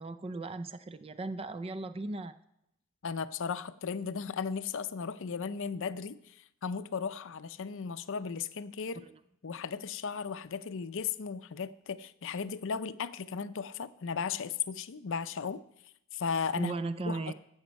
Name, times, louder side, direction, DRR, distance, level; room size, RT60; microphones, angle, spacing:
voice 1, 0.0-2.4 16.6-17.3, right 2 dB, 25° right, 13 dB, 0.4 m, -36 dB
voice 2, 3.0-6.3 6.6-9.1 9.4-15.6 16.1-16.7 17.1-17.3, left 6 dB, 60° left, 13 dB, 0.5 m, -36 dB
14.0 x 7.9 x 5.3 m, 0.78 s
head